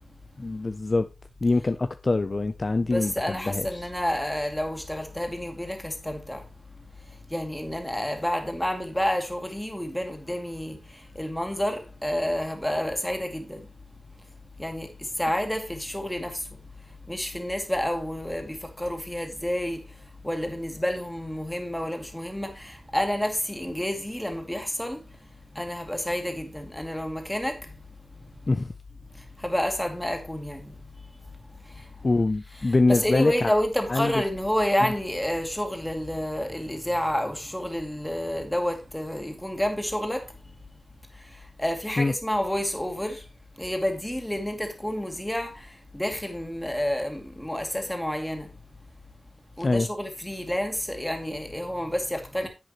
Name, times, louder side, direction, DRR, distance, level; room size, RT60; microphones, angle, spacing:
voice 1, 0.4-1.1 1.4-3.8 28.5-28.7 32.0-33.5 33.9-34.1 42.0-42.1 49.6-49.9, left 3 dB, 40° left, 0.6 m, -24 dB
voice 2, 2.9-6.4 7.3-13.6 14.6-16.4 17.1-19.8 20.2-25.0 25.5-27.7 29.1-30.7 31.7-31.9 32.6-40.3 41.2-43.2 43.6-48.5 49.6-52.5, left 1 dB, 5° left, 2.4 m, -29 dB
10.5 x 7.9 x 2.9 m
wide cardioid pair, 105°, 0 cm